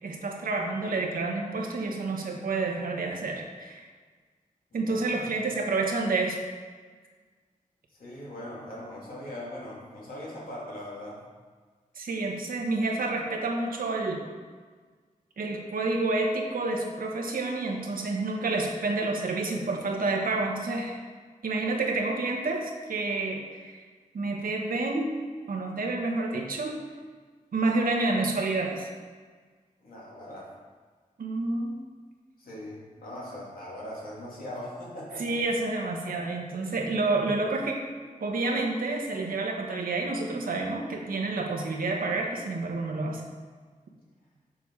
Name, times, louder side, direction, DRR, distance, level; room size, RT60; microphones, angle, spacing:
voice 1, 0.0-3.8 4.7-6.4 11.9-14.2 15.4-21.0 21.4-23.8 24.1-25.1 25.5-26.8 27.5-28.9 31.2-31.7 35.2-37.8 38.2-43.2, right 3 dB, 85° right, 1 dB, 1.3 m, -29 dB
voice 2, 4.7-5.5 8.0-11.2 29.8-30.5 32.4-35.4, left 1 dB, 90° left, -5 dB, 2.6 m, -40 dB
7.1 x 7.0 x 4.8 m, 1.5 s
wide cardioid pair, 120°, 14 cm